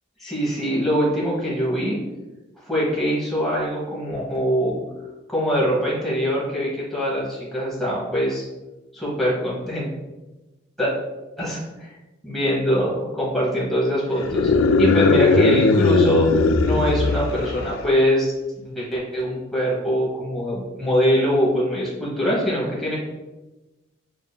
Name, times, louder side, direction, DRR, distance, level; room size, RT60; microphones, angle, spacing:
voice 1, 0.2-2.0 2.6-4.8 5.3-8.4 8.9-9.9 10.8-10.9 11.4-11.6 12.2-14.5 14.8-16.3 16.6-18.3 18.6-23.0, equal, ahead, -7 dB, 1.0 m, -23 dB
sound 1, 14.2-17.9, left 4 dB, 75° left, 0.3 m, -19 dB
6.7 x 2.7 x 2.2 m, 1.1 s
head